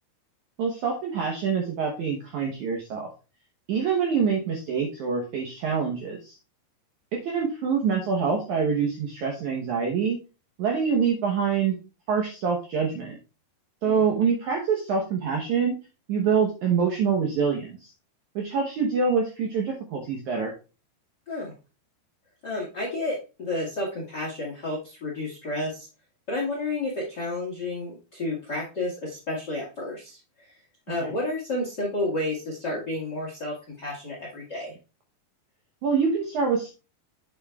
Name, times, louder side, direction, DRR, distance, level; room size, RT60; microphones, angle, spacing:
voice 1, 0.6-3.1 3.7-6.4 7.2-10.2 10.6-11.8 12.1-13.2 13.8-15.7 16.1-17.9 18.4-20.5 31.0-31.1 35.8-36.7, right 6 dB, 75° right, 1 dB, 1.8 m, -25 dB
voice 2, 22.4-25.9 26.3-30.5 30.9-34.7, left 2 dB, 50° left, -2 dB, 1.3 m, -31 dB
8.6 x 7.5 x 2.3 m, 0.32 s
omnidirectional pair, 4.8 m